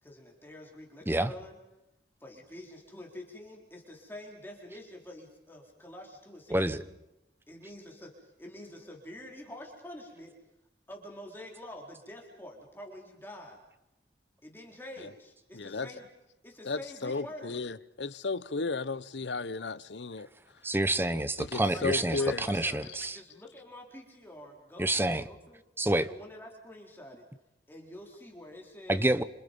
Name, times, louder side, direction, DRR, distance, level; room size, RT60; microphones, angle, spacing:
voice 1, 0.0-1.6 2.2-6.9 7.5-10.3 10.9-13.6 14.4-16.0 16.4-17.6 21.7-25.6 26.0-27.3 27.7-29.1, left 1 dB, 10° left, 4.1 m, -47 dB
voice 2, 6.5-6.8 20.6-23.2 24.8-25.3 25.8-26.1 28.9-29.2, right 1 dB, 15° right, 1.0 m, -28 dB
voice 3, 15.5-15.9 16.6-20.3 21.4-22.4, left 4 dB, 85° left, 0.9 m, -34 dB
29.5 x 27.0 x 5.4 m
head